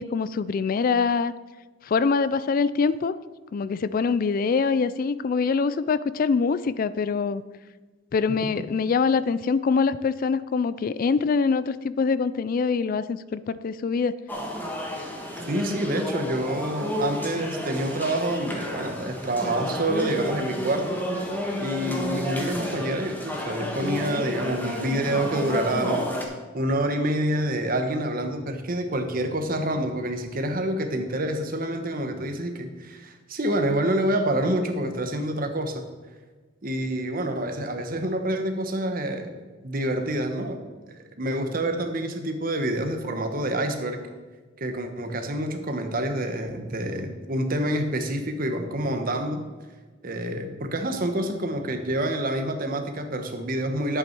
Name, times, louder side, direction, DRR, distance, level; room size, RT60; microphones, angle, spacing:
voice 1, 0.0-1.3 1.8-3.1 3.5-7.4 8.1-14.1, left 5 dB, 45° left, 16 dB, 0.3 m, -24 dB
sound 1, 14.3-26.2, equal, 10° left, 1.4 m, -31 dB
voice 2, 15.5-21.0 21.6-26.1 26.5-35.9 36.6-39.4 39.6-40.6 40.9-44.0 44.6-49.4 50.0-54.0, right 1 dB, 45° right, 6 dB, 1.2 m, -27 dB
11.0 x 8.5 x 4.6 m, 1.3 s
head